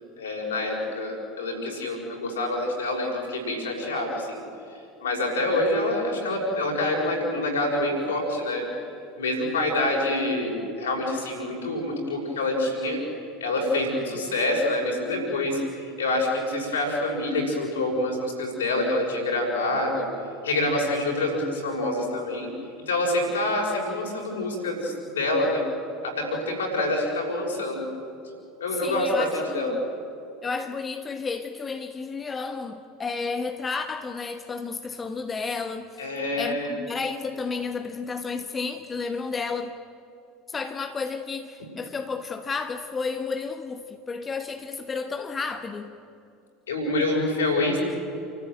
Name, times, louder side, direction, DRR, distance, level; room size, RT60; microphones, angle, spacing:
voice 1, 0.2-4.4 5.0-8.6 9.2-13.0 13.4-20.0 20.4-22.5 22.9-25.6 26.0-27.9 28.6-29.8 36.0-36.8 46.7-47.8, left 2 dB, 75° left, -1 dB, 6.3 m, -26 dB
voice 2, 28.7-29.9 30.4-36.1 36.4-39.7 40.5-46.0, left 4 dB, 25° left, 7 dB, 1.2 m, -32 dB
29.0 x 14.0 x 9.3 m, 2.6 s
figure-of-eight pair, 70°, 0 cm